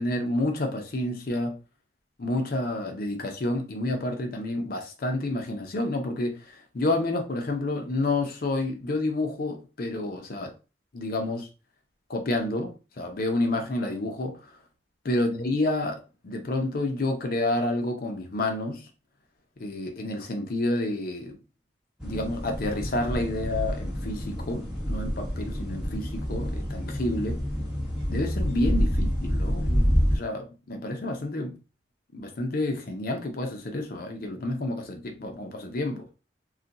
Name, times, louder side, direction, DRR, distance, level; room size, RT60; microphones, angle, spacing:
voice 1, 0.0-1.6 2.2-10.5 10.9-11.5 12.1-14.5 15.0-18.9 19.6-21.4 22.0-27.4 28.1-31.6 32.1-36.0, left 2 dB, 55° left, 0.6 m, -29 dB
sound 1, 22.0-30.2, equal, 5° right, 1.1 m, -28 dB
2.4 x 2.2 x 3.9 m
head